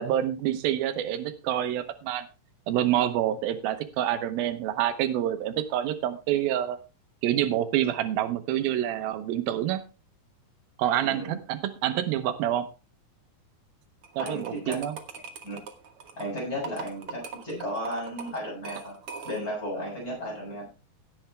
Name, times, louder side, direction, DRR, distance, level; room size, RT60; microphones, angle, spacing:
voice 1, 0.0-2.2 2.7-6.8 7.2-9.8 10.8-12.7 14.2-15.0, right 11 dB, 90° right, 9 dB, 2.8 m, -27 dB
voice 2, 11.0-11.4 14.2-14.8 15.4-15.6 16.2-18.9 19.2-20.6, equal, 20° left, -4 dB, 8.3 m, -34 dB
sound 1, 14.0-19.6, right 6 dB, 60° right, 1.5 m, -41 dB
16.5 x 7.9 x 3.3 m, 0.31 s
omnidirectional pair, 4.1 m